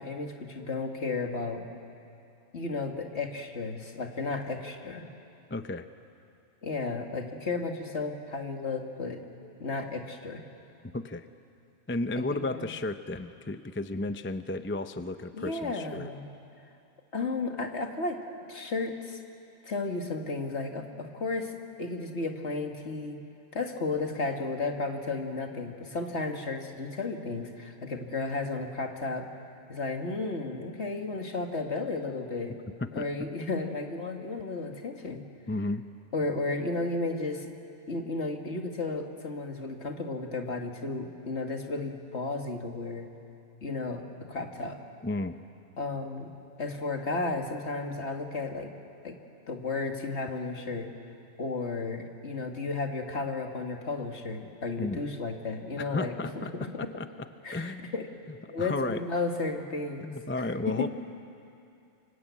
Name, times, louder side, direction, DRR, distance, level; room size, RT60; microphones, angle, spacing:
voice 1, 0.0-1.6 2.5-5.0 6.6-9.2 9.6-10.4 12.2-12.6 15.3-16.3 17.1-18.2 18.5-19.2 19.7-23.2 23.5-29.3 29.7-32.5 32.9-35.2 36.1-37.5 37.9-43.1 43.6-44.8 45.8-46.3 46.6-48.7 49.0-49.2 49.5-50.9 51.4-56.5 57.4-58.1 58.5-60.1, left 3 dB, 60° left, 3 dB, 2.2 m, -33 dB
voice 2, 5.5-5.9 10.9-11.3 11.9-16.1 32.8-33.1 35.5-35.8 45.0-45.3 54.8-55.0 55.8-57.9 58.6-59.0 60.0-60.9, left 2 dB, 15° left, 9 dB, 0.5 m, -33 dB
28.5 x 24.5 x 8.4 m, 2.6 s
omnidirectional pair, 1.3 m